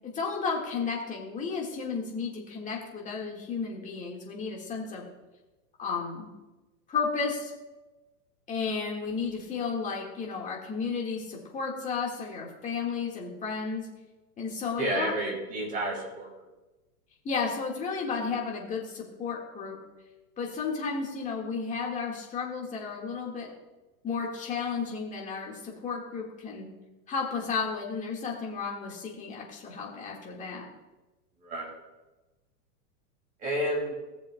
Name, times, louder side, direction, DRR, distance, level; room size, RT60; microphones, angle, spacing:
voice 1, 0.0-5.0 5.8-6.3 6.9-7.5 8.5-13.9 14.4-15.1 17.2-19.8 20.4-23.5 24.0-26.7 27.1-30.7, left 5 dB, 15° left, -1 dB, 1.7 m, -33 dB
voice 2, 14.8-16.3 31.4-31.7 33.4-33.9, right 1 dB, 20° right, -1 dB, 2.5 m, -30 dB
18.5 x 7.0 x 2.2 m, 1.1 s
supercardioid pair, 150°, 46 cm